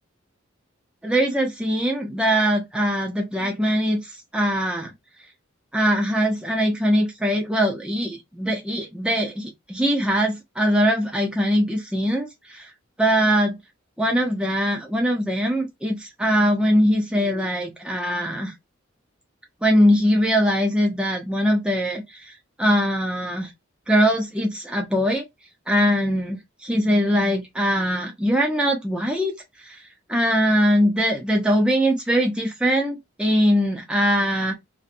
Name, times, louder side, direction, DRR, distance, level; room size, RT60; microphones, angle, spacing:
voice 1, 1.0-4.9 5.7-12.7 13.0-13.6 14.0-18.5 19.6-22.3 22.6-23.5 23.9-25.2 25.7-29.3 29.6-29.8 30.1-34.5, equal, 5° right, 0.5 m, -21 dB
2.7 x 2.1 x 2.5 m
head